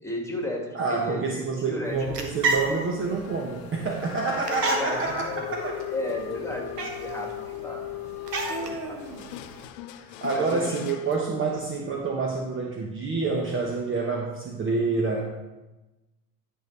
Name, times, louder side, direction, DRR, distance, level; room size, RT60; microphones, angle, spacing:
voice 1, 0.0-1.2 1.6-2.0 4.8-5.0 5.4-5.5 5.9-7.9 8.3-9.0 10.3-10.7, left 1 dB, 5° left, 0 dB, 2.1 m, -34 dB
voice 2, 0.7-5.8 8.5-9.2 9.9-15.4, right 4 dB, 25° right, 0 dB, 1.0 m, -28 dB
sound 1, 1.8-9.7, right 3 dB, 85° right, 1.2 m, -34 dB
sound 2, 3.0-11.3, left 12 dB, 50° left, 0.5 m, -38 dB
10.5 x 5.4 x 3.3 m, 1.1 s
figure-of-eight pair, 70°, 47 cm